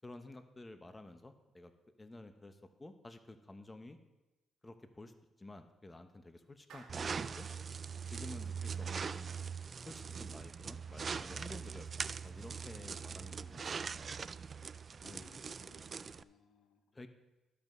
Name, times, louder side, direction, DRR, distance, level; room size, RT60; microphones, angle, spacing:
voice 1, 0.0-1.7 2.0-4.0 4.6-5.1 5.4-7.5 8.1-9.3 9.9-14.0 15.0-15.3 16.9-17.1, left 2 dB, 20° left, 8 dB, 0.8 m, -52 dB
Clapping, 6.7-9.0, right 5 dB, 70° right, 2.0 m, -59 dB
sound 1, 6.9-16.2, right 6 dB, 40° right, 0.3 m, -42 dB
voice 2, 8.3-8.6 12.8-13.7 15.0-16.8, left 6 dB, 70° left, 8 dB, 0.9 m, -63 dB
12.5 x 5.4 x 6.2 m, 1.0 s
cardioid pair, 90°, 0 cm